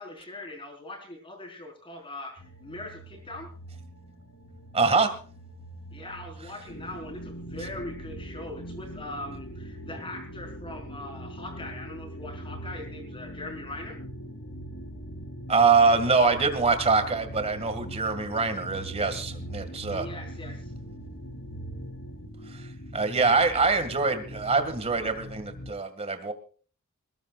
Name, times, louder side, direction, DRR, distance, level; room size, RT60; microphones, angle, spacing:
voice 1, 0.0-3.5 5.9-14.0 19.5-19.6 19.9-20.7, left 2 dB, 25° left, 3 dB, 4.7 m, -41 dB
sound 1, 2.4-22.3, right 2 dB, 90° left, 2.4 m, -45 dB
voice 2, 4.7-5.1 15.5-20.1 22.5-26.3, right 4 dB, 30° right, 9 dB, 2.1 m, -24 dB
sound 2, 6.7-25.7, equal, 60° left, 3.0 m, -42 dB
21.5 x 19.5 x 2.5 m, 0.42 s
head